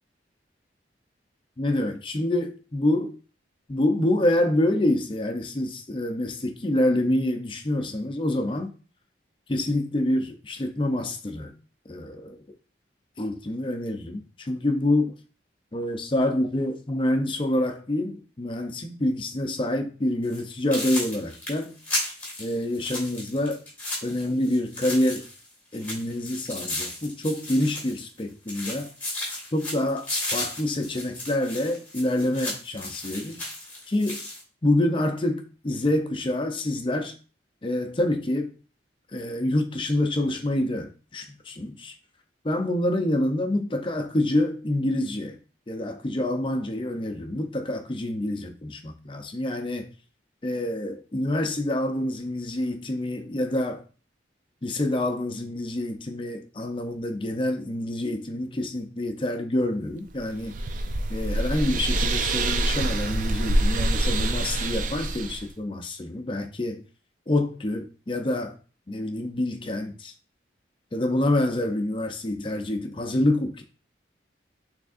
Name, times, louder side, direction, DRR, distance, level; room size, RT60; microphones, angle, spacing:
voice 1, 1.6-3.2 3.7-8.7 9.5-11.5 11.9-12.4 13.2-15.1 15.7-21.7 22.4-23.6 24.0-25.3 25.7-28.9 29.5-33.4 33.9-34.2 34.6-37.1 37.6-38.6 39.1-41.9 42.4-45.4 45.7-49.9 50.4-53.8 54.6-60.6 61.1-66.8 67.3-68.6 68.9-70.1 70.9-73.6, left 1 dB, 30° left, 0.5 m, -27 dB
sound 1, 20.2-20.4 20.7-25.5 25.7-28.2 28.5-34.4, left 1 dB, 10° left, 1.6 m, -34 dB
sound 2, 60.1-65.4, right 1 dB, 45° right, 0.4 m, -25 dB
6.1 x 3.4 x 2.5 m
head